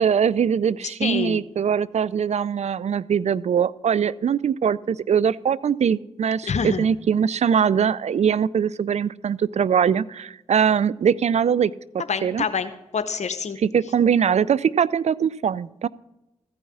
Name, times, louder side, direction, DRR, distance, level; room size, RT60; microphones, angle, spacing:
voice 1, 0.0-12.4 13.6-15.9, right 7 dB, 60° right, 21 dB, 0.4 m, -22 dB
voice 2, 1.0-1.4 6.4-6.9 12.1-13.6, left 5 dB, 60° left, 10 dB, 0.8 m, -26 dB
14.5 x 5.5 x 8.6 m, 0.95 s
supercardioid pair, 40°, 13 cm